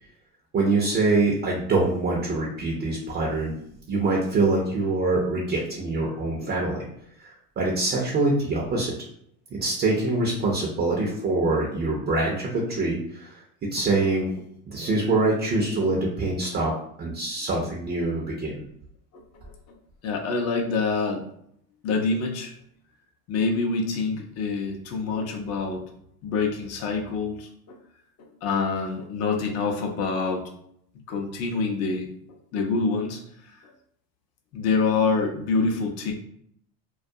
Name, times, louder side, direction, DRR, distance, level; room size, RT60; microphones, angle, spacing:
voice 1, 0.5-3.5 3.9-6.8 7.2-9.0 9.5-14.3 14.7-16.7 17.0-18.6, right 2 dB, 25° right, -2 dB, 0.5 m, -24 dB
voice 2, 20.0-21.2 21.8-22.5 23.3-25.8 26.2-27.8 28.2-30.4 31.1-32.1 32.5-33.2 33.6-33.7 34.5-36.1, left 4 dB, 35° left, 1 dB, 0.6 m, -26 dB
2.3 x 2.2 x 2.6 m, 0.69 s
hypercardioid pair, 95°, 46 cm